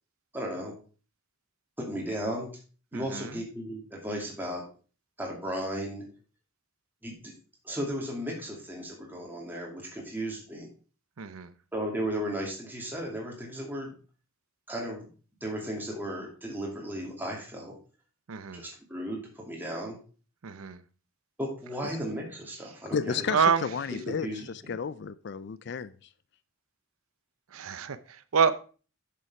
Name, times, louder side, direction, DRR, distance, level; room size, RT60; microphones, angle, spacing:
voice 1, 0.3-0.7 1.8-2.5 2.9-4.6 5.2-6.1 7.0-7.3 7.6-10.7 11.7-13.9 14.7-15.1 15.4-17.8 18.5-20.0 21.4-23.3 24.1-24.7, equal, 10° right, 2.5 m, -35 dB
voice 2, 2.9-3.4 11.2-11.5 18.3-18.6 20.4-20.8 23.3-23.7 27.5-28.5, right 6 dB, 75° right, 0.6 m, -27 dB
voice 3, 22.9-24.3 24.7-25.9, left 6 dB, 50° left, 0.4 m, -32 dB
7.6 x 6.9 x 4.9 m
head